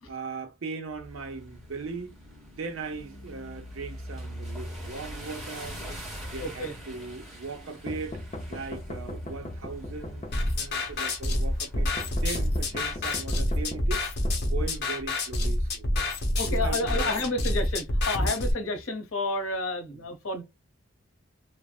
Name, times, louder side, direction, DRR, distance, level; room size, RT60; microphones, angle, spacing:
voice 1, 0.1-2.1 2.6-5.8 6.3-8.2 8.5-10.3 10.5-11.9 12.2-14.0 14.5-15.9 16.5-17.5 18.2-18.5 19.9-20.1, right 4 dB, 75° right, 0.6 m, -38 dB
sound 1, 0.9-13.1, equal, ahead, 1.0 m, -43 dB
voice 2, 6.4-6.7 15.9-16.0 16.4-20.4, left 2 dB, 75° left, 0.9 m, -30 dB
sound 2, 7.9-10.8 11.8-15.1, left 1 dB, 30° left, 0.5 m, -39 dB
sound 3, 10.3-18.5, left 1 dB, 50° left, 0.9 m, -27 dB
3.2 x 2.0 x 2.3 m
head